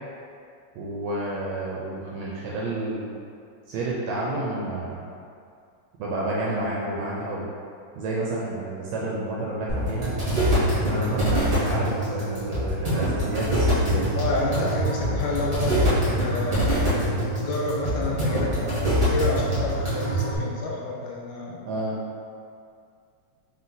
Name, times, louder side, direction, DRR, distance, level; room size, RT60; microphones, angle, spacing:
voice 1, 0.7-3.1 3.7-5.0 6.0-7.5 7.9-10.1 10.8-14.0 14.5-14.7 21.7-22.0, right 2 dB, 80° right, -5 dB, 1.5 m, -30 dB
sound 1, 9.7-20.3, equal, 50° right, 0.4 m, -24 dB
voice 2, 14.2-17.0 17.4-21.6, left 2 dB, 85° left, -3 dB, 2.0 m, -29 dB
5.3 x 2.2 x 3.9 m, 2.3 s
omnidirectional pair, 3.3 m